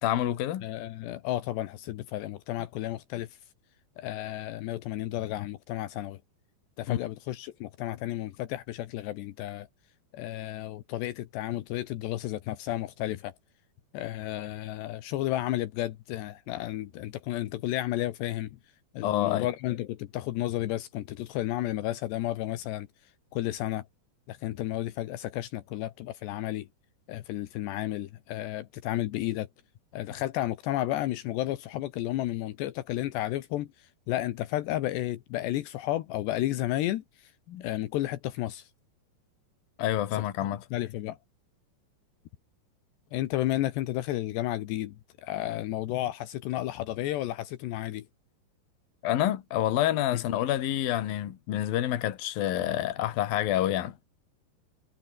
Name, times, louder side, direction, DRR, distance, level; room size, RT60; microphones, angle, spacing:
voice 1, 0.0-0.7 6.9-7.0 19.0-19.5 37.5-37.6 39.8-40.6 49.0-54.1, left 12 dB, 60° left, 3.3 m, -28 dB
voice 2, 0.6-3.4 4.0-6.2 6.8-9.7 10.1-13.3 13.9-18.6 18.9-22.9 23.3-23.9 24.3-26.7 27.1-29.5 29.9-37.3 37.6-38.7 40.1-40.2 40.7-41.2 43.1-48.1 50.1-50.2, left 14 dB, 80° left, 3.3 m, -32 dB
omnidirectional pair, 5.1 m